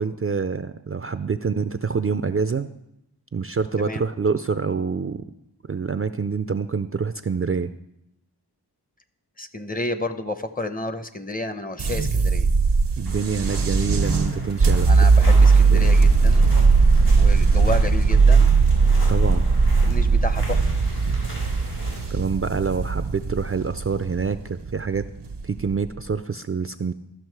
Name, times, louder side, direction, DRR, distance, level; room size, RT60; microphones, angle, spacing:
voice 1, 0.0-2.7 3.3-5.2 5.7-7.7 13.0-14.9 15.2-15.3 15.7-15.9 19.1-19.5 22.1-25.1 25.4-26.9, right 5 dB, 35° right, 11 dB, 0.4 m, -26 dB
voice 2, 3.8-4.1 9.4-12.5 14.9-16.6 17.2-18.6 19.8-20.7, left 2 dB, 20° left, 10 dB, 0.7 m, -31 dB
sound 1, 11.8-26.0, right 4 dB, 85° right, 0.8 m, -18 dB
sound 2, 13.0-22.1, equal, 80° left, 3.6 m, -40 dB
13.0 x 6.1 x 4.6 m, 0.82 s
wide cardioid pair, 40°, 41 cm